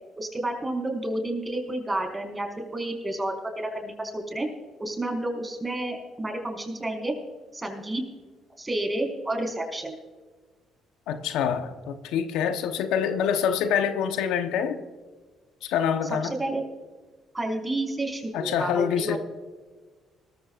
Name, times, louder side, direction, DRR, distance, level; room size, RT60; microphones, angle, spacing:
voice 1, 0.2-4.5 4.8-7.1 7.5-8.0 8.6-10.0 16.4-16.6 17.3-19.2, right 1 dB, 20° right, 4.8 m, -30 dB
voice 2, 11.1-14.8 15.6-16.4 18.3-19.2, left 8 dB, 80° left, 0.9 m, -26 dB
20.0 x 14.0 x 2.5 m
supercardioid pair, 65°, 0 cm